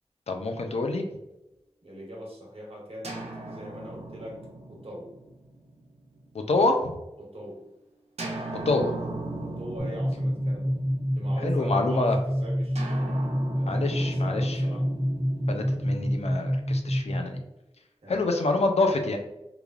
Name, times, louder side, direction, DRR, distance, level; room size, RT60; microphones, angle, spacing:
voice 1, 0.3-1.0 6.5-6.9 8.7-8.9 11.4-12.2 13.7-14.6 15.5-17.4 18.1-19.2, left 3 dB, 75° left, 5 dB, 0.4 m, -26 dB
voice 2, 1.8-3.2 3.5-4.4 4.7-5.1 7.2-7.6 9.4-10.7 11.1-13.1 13.6-14.8 18.0-18.3, equal, 65° right, -3 dB, 1.0 m, -41 dB
sound 1, 3.0-6.8 8.2-11.7 12.7-16.9, right 2 dB, 80° right, 0.5 m, -39 dB
sound 2, 9.8-17.3, equal, 55° left, 1.1 m, -27 dB
3.2 x 2.3 x 2.4 m, 0.93 s
wide cardioid pair, 50°, 11 cm